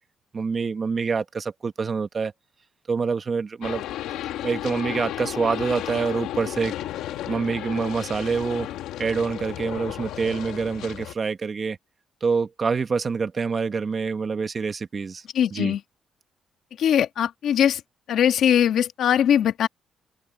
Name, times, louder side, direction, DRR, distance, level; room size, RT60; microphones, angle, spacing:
voice 1, 0.3-2.3 2.9-3.8 4.4-6.7 7.3-8.7 9.0-11.8 12.2-15.2 15.5-15.7, right 5 dB, 40° right, 1.2 m, -26 dB
sound 1, 3.6-11.1, left 12 dB, 90° left, 1.9 m, -33 dB
voice 2, 15.3-15.8 16.8-17.8 18.1-19.7, left 9 dB, 70° left, 1.4 m, -21 dB
open air
cardioid pair, 90°, 0 cm